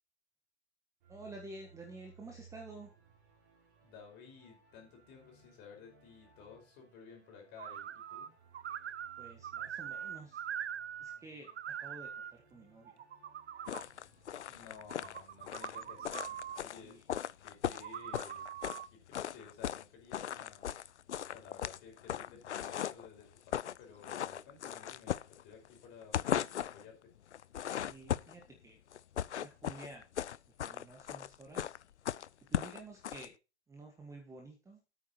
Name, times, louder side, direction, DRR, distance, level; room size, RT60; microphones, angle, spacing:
sound 1, 1.0-15.5, right 5 dB, 40° right, 5.6 m, -63 dB
voice 1, 1.1-2.9 9.2-10.4 11.0-13.0 16.7-17.0 27.7-28.8 29.4-30.0 30.6-31.8 32.5-33.3 33.7-34.8, right 2 dB, 10° right, 2 dB, 1.5 m, -51 dB
voice 2, 3.8-8.3 14.5-16.2 16.6-17.0 17.4-18.4 18.9-20.7 21.3-27.1, left 6 dB, 30° left, 2 dB, 4.9 m, -55 dB
sound 2, 7.6-8.3 8.5-11.2 11.4-12.3 12.9-13.8 14.8-16.6 17.7-18.9, right 9 dB, 70° right, 0.8 m, -43 dB
sound 3, 13.7-18.8 19.1-19.8 20.1-23.1 23.4-23.8 24.0-25.7 26.0-26.8 27.3-28.4 28.9-33.3, left 10 dB, 80° left, 0.6 m, -37 dB
9.9 x 8.9 x 4.4 m, 0.30 s
hypercardioid pair, 130°, 34 cm